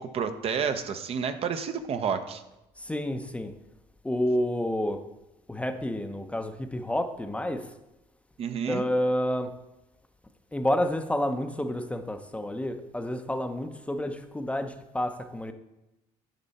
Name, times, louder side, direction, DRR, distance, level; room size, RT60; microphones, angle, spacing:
voice 1, 0.0-2.4 8.4-8.8, right 6 dB, 45° right, 9 dB, 0.7 m, -30 dB
voice 2, 2.8-3.5 4.0-5.0 5.5-7.7 8.7-9.5 10.5-15.5, left 1 dB, 10° left, 7 dB, 0.6 m, -29 dB
9.0 x 5.4 x 4.1 m, 0.94 s
supercardioid pair, 95°, 14 cm